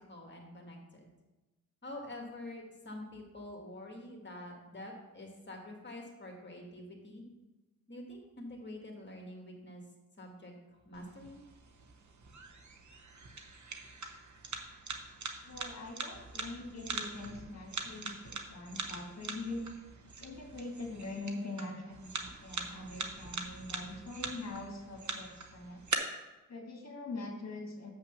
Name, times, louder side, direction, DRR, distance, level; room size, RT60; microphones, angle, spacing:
voice 1, 0.1-0.8 1.8-7.2 7.9-9.8 10.2-10.5 10.8-11.4, left 1 dB, 30° left, 1 dB, 1.6 m, -46 dB
sound 1, 10.9-25.9, right 4 dB, 55° right, 1.0 m, -43 dB
voice 2, 15.4-19.6 20.2-25.8 26.5-27.9, left 2 dB, 50° left, 2 dB, 1.8 m, -43 dB
7.1 x 5.9 x 6.8 m, 1.1 s
wide cardioid pair, 160°, 35 cm